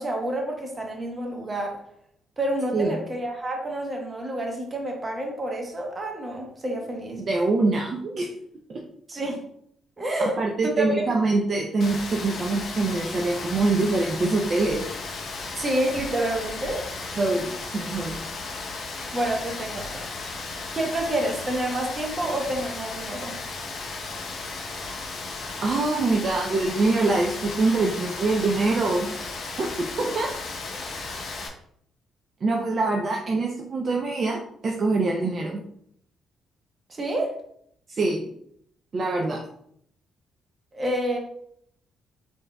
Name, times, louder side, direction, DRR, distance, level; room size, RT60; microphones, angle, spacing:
voice 1, 0.0-1.8 2.4-7.2 9.1-9.4 10.0-10.3 10.7-11.0 15.6-16.8 19.1-20.0 20.7-23.3 36.9-37.3 40.7-41.2, right 1 dB, 30° right, 1 dB, 1.0 m, -28 dB
voice 2, 7.3-8.3 8.7-8.8 10.2-14.9 17.2-18.2 25.6-29.1 29.6-30.3 32.4-35.6 37.9-38.3 38.9-39.4, right 3 dB, 45° right, 0 dB, 0.5 m, -24 dB
Rain, 11.8-31.5, left 3 dB, 60° left, 0.8 m, -35 dB
3.8 x 3.8 x 2.3 m, 0.69 s
cardioid pair, 90°, 0 cm